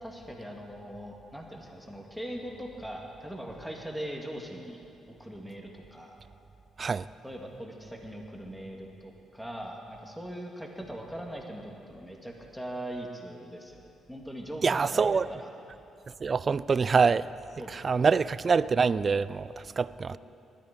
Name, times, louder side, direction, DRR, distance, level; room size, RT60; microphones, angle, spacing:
voice 1, 0.0-4.8 5.1-6.2 7.2-15.5 17.6-18.1 20.1-20.2, equal, ahead, 2.2 m, -41 dB
voice 2, 14.6-15.3 16.2-17.3 17.7-20.2, right 5 dB, 40° right, 0.4 m, -25 dB
20.5 x 13.0 x 5.2 m
cardioid pair, 90°, 0 cm